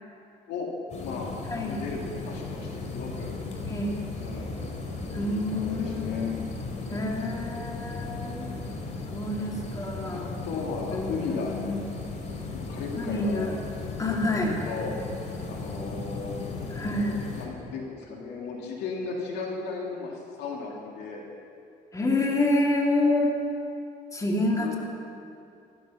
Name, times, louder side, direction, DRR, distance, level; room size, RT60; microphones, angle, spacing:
sound 1, 0.9-17.5, left 3 dB, 45° left, 3.0 m, -36 dB
voice 1, 1.0-1.3 1.6-3.3 4.2-4.6 5.1-6.3 6.8-7.1 10.1-11.6 12.5-13.6 14.6-14.9 15.2-16.9 17.4-21.2 24.5-24.8, left 4 dB, 85° left, -1 dB, 2.6 m, -36 dB
voice 2, 3.7-4.0 5.1-6.4 6.9-8.5 9.1-10.3 10.9-11.8 13.0-13.6 14.0-14.6 16.7-17.2 21.9-23.4 24.1-24.8, left 2 dB, 20° left, -1 dB, 2.6 m, -28 dB
14.5 x 13.5 x 5.8 m, 2.6 s
cardioid pair, 110°, 17 cm